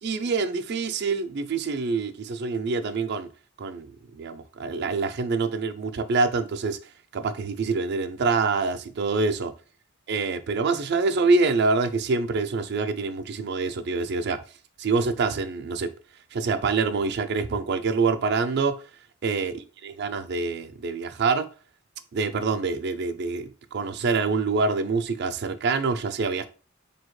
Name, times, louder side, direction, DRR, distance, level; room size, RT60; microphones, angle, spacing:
voice 1, 0.0-3.3 3.6-6.8 7.1-9.5 10.1-14.4 14.8-15.9 16.3-18.7 19.2-21.5 22.1-26.5, right 4 dB, 55° right, 0.4 m, -26 dB
4.1 x 2.7 x 3.1 m
head